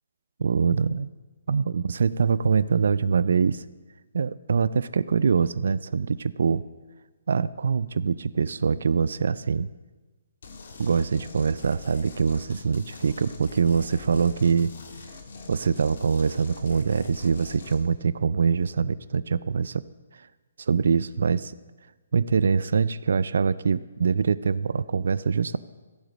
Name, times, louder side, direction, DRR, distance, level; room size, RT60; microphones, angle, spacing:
voice 1, 0.4-1.1 1.5-3.6 4.1-6.6 7.3-9.7 10.8-14.7 15.5-19.8 20.2-20.3 20.6-21.5 22.1-25.6, right 5 dB, 65° right, 16 dB, 0.3 m, -24 dB
sound 1, 10.4-17.8, left 3 dB, 55° left, 1.5 m, -43 dB
15.0 x 5.2 x 6.1 m, 1.3 s
hypercardioid pair, 170°, 0 cm